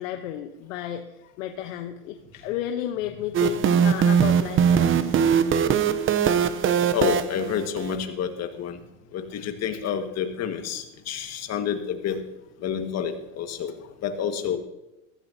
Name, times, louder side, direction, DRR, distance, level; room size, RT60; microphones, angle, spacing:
voice 1, 0.0-5.2, left 11 dB, 80° left, 6 dB, 1.1 m, -33 dB
sound 1, 3.3-8.0, right 7 dB, 30° right, 0.8 m, -21 dB
voice 2, 6.9-8.8 9.1-12.2 12.6-13.7 14.0-14.6, left 7 dB, 40° left, 6 dB, 1.8 m, -29 dB
15.0 x 14.5 x 2.8 m, 0.92 s
supercardioid pair, 120°, 39 cm